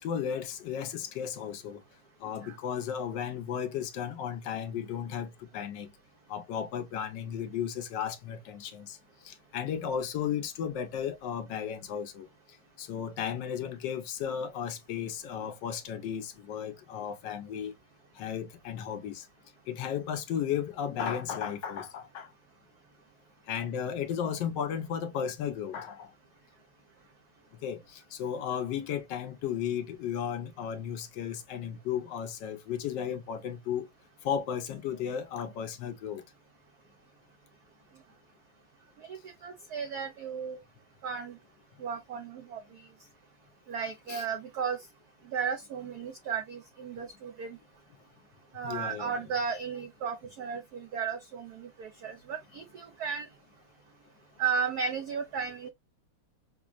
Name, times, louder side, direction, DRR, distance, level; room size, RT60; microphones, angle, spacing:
voice 1, 0.0-1.8 2.2-5.9 6.3-9.0 9.2-12.3 12.8-17.7 18.2-19.3 19.7-22.3 23.5-26.1 27.6-33.9 34.2-36.2 44.1-44.2 48.6-49.1, left 8 dB, 75° left, 1.0 m, -34 dB
voice 2, 39.1-40.6 41.0-41.3 41.8-42.6 43.7-44.8 45.3-47.6 48.5-53.3 54.4-55.7, right 6 dB, 85° right, 0.8 m, -34 dB
6.0 x 2.0 x 2.3 m
omnidirectional pair, 2.4 m